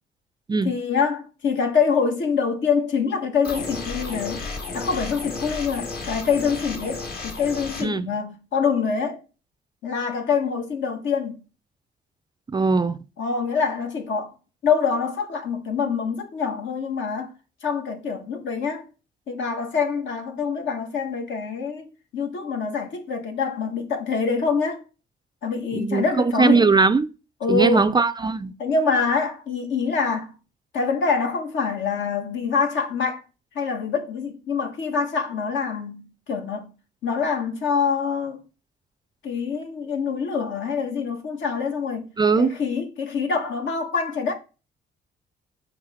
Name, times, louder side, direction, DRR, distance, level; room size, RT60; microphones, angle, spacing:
voice 1, 0.6-4.4 4.7-9.2 9.8-11.4 13.2-14.3 14.6-17.3 17.6-18.8 19.3-24.8 25.4-26.8 27.4-27.9 28.6-30.3 30.7-33.2 33.5-36.7 37.0-38.4 39.2-42.1 42.4-44.3, left 5 dB, 70° left, 1.5 m, -25 dB
sound 1, 3.4-7.8, left 3 dB, 50° left, 1.6 m, -33 dB
voice 2, 12.5-13.0 25.7-27.1 27.5-28.5 42.2-42.5, right 4 dB, 20° right, 0.3 m, -20 dB
6.3 x 3.2 x 4.9 m
cardioid pair, 90°, 20 cm